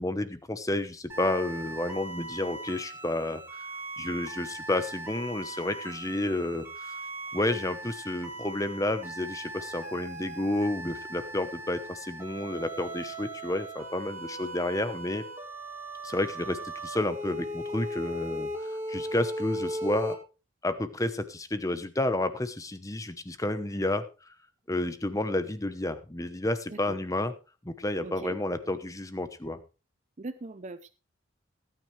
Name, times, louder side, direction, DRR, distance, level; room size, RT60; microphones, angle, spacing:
voice 1, 0.0-3.7 4.0-7.0 7.3-15.2 16.0-20.2 20.6-24.0 24.7-27.3 27.6-29.6, left 1 dB, 15° left, 11 dB, 1.0 m, -31 dB
sound 1, 1.1-20.1, right 1 dB, 15° right, 3.9 m, -38 dB
voice 2, 28.0-28.4 30.2-30.9, right 2 dB, 35° right, 10 dB, 0.6 m, -40 dB
18.5 x 9.4 x 3.3 m, 0.32 s
head